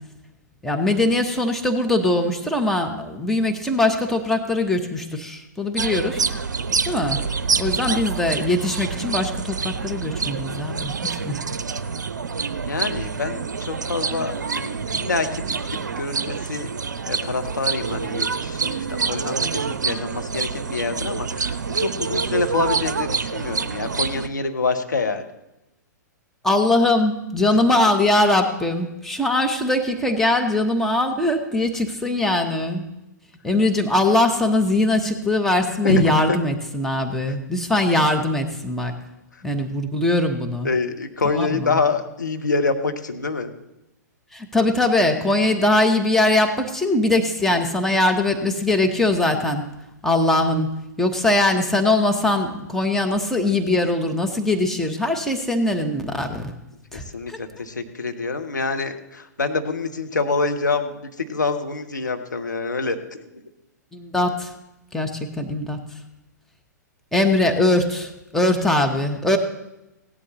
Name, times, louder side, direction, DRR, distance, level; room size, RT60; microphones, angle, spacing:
voice 1, 0.6-6.3 6.8-7.2 7.6-11.4 26.4-32.8 33.4-38.9 39.4-40.7 41.3-41.8 44.3-49.7 50.0-50.7 51.0-56.5 56.9-57.4 63.9-64.5 64.9-65.8 67.1-69.4, left 2 dB, 5° left, 3 dB, 1.1 m, -21 dB
sound 1, 5.8-24.3, right 5 dB, 75° right, 0.5 m, -27 dB
voice 2, 7.6-8.0 12.7-16.7 17.1-25.2 35.8-36.4 40.6-43.5 56.9-63.2, left 3 dB, 80° left, 5 dB, 1.1 m, -26 dB
17.0 x 11.0 x 3.2 m, 0.93 s
figure-of-eight pair, 110°, 10 cm